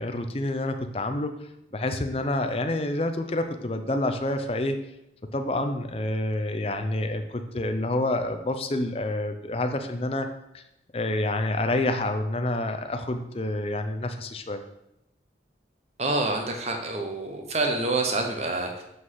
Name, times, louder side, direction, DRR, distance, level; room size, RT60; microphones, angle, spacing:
voice 1, 0.0-1.3 1.7-4.8 5.3-10.3 10.5-10.6 10.9-14.6, left 1 dB, 30° left, 7 dB, 0.5 m, -28 dB
voice 2, 16.0-18.8, right 2 dB, 35° right, 3 dB, 1.0 m, -27 dB
7.9 x 4.0 x 4.8 m, 0.83 s
head